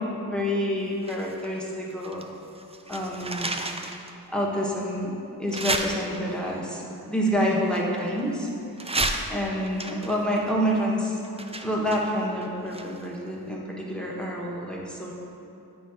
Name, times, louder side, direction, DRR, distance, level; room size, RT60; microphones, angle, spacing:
voice 1, 0.2-2.3 2.9-3.5 4.3-5.1 5.4-8.5 9.3-11.2 11.6-15.1, equal, ahead, -3 dB, 1.2 m, -28 dB
sound 1, 1.0-2.3 2.6-4.1 4.6-4.7 5.5-6.5 7.4-8.4 8.8-13.2 13.5-13.6, right 2 dB, 15° right, 0.4 m, -32 dB
9.2 x 3.4 x 4.9 m, 2.8 s
wide cardioid pair, 65°, 38 cm